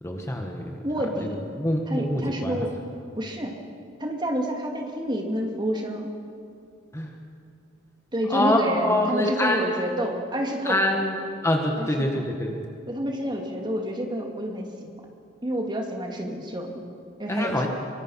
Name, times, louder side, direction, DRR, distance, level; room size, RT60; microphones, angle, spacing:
voice 1, 0.0-0.8 1.6-2.7 6.9-7.1 8.3-9.7 10.6-11.1 11.4-12.7 17.3-17.7, left 1 dB, 15° left, 2 dB, 1.6 m, -25 dB
voice 2, 0.8-1.4 1.9-2.7 3.2-3.6 4.0-6.1 8.1-11.0 11.8-11.9 12.1-12.2 12.9-14.9 15.4-16.8 17.2-17.6, equal, 25° right, 2 dB, 2.6 m, -29 dB
24.5 x 23.5 x 5.8 m, 2.4 s
head